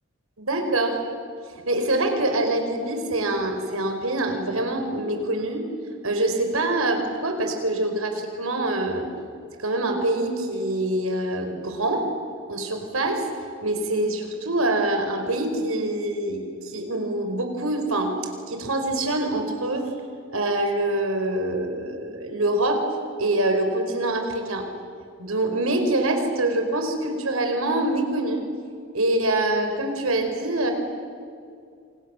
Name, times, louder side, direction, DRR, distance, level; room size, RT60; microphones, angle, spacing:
voice 1, 0.4-1.0 1.5-5.6 6.0-9.1 9.6-12.1 12.5-13.3 13.6-18.1 18.5-19.9 20.3-22.8 23.2-24.7 25.2-28.5 28.9-30.7, right 1 dB, 85° right, 5 dB, 4.8 m, -25 dB
27.5 x 27.5 x 7.1 m, 2.3 s
head